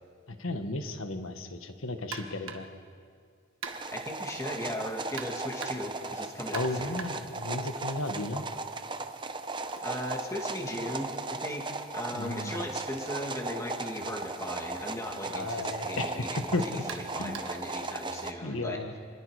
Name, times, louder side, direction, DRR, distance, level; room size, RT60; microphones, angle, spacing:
voice 1, 0.3-2.7 6.5-8.4 12.1-12.6 15.3-16.2 16.5-16.8 17.2-17.4 18.4-18.9, left 2 dB, 75° left, 7 dB, 1.5 m, -34 dB
sound 1, 2.1-2.8 3.6-4.1 5.2-6.0 6.5-8.3 8.6-12.5 13.6-13.8 14.2-14.3 15.2-15.4 16.9-17.7, right 5 dB, 70° right, 1.6 m, -45 dB
sound 2, 3.7-18.3, right 3 dB, 20° right, 0.8 m, -37 dB
voice 2, 3.9-7.0 9.8-11.6 11.9-18.8, left 1 dB, 15° left, 1 dB, 2.1 m, -37 dB
27.0 x 21.0 x 5.0 m, 2.1 s
head